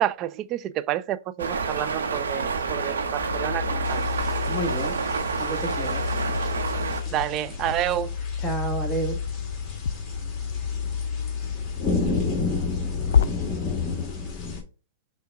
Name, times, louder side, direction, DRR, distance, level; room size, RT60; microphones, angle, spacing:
voice 1, 0.0-4.0 7.1-8.1, right 13 dB, 35° right, 0.3 m, -29 dB
sound 1, 1.4-7.0, right 5 dB, 80° right, 0.8 m, -28 dB
sound 2, 2.7-13.3, left 6 dB, 70° left, 0.4 m, -30 dB
sound 3, 3.9-14.6, left 4 dB, 25° left, 1.2 m, -32 dB
voice 2, 4.5-4.9 5.4-6.5 8.4-9.2, right 2 dB, 5° left, 1.4 m, -31 dB
5.5 x 2.2 x 3.5 m
hypercardioid pair, 120°, 0 cm